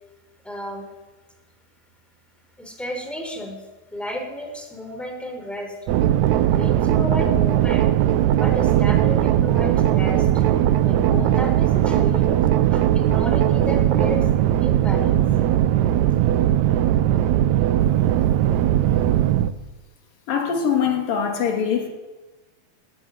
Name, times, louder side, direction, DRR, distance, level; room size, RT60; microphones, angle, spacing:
voice 1, 0.4-0.9 2.6-3.6 3.9-5.8 6.5-7.9 8.3-10.4 10.8-14.3 14.6-15.3, left 1 dB, ahead, 3 dB, 4.6 m, -32 dB
sound 1, 5.9-19.5, right 12 dB, 70° right, 1.8 m, -19 dB
voice 2, 20.3-21.9, left 7 dB, 75° left, 2 dB, 4.7 m, -23 dB
19.5 x 14.0 x 10.0 m, 1.2 s
omnidirectional pair, 4.0 m